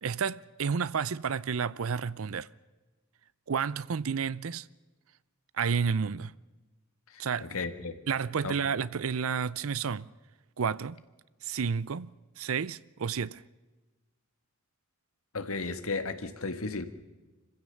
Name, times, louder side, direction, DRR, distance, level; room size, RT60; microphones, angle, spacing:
voice 1, 0.0-2.5 3.5-4.7 5.5-6.3 7.2-7.5 8.1-10.1 10.6-11.0 11.4-12.1 12.4-13.4, right 6 dB, 75° right, 0.6 m, -31 dB
voice 2, 7.1-7.9 8.4-8.5 15.3-16.8, left 3 dB, 90° left, 1.7 m, -34 dB
26.0 x 16.0 x 7.0 m
head